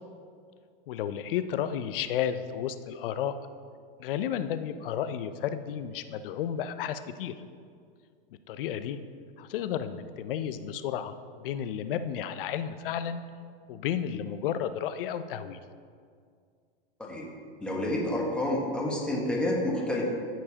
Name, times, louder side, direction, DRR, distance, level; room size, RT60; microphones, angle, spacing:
voice 1, 0.9-3.3 4.0-7.3 8.5-9.0 9.4-13.2 13.7-15.6, left 9 dB, 65° left, 11 dB, 0.6 m, -32 dB
voice 2, 17.6-20.0, left 1 dB, 5° left, -3 dB, 1.3 m, -29 dB
13.0 x 4.5 x 2.9 m, 2.1 s
hypercardioid pair, 125°, 30 cm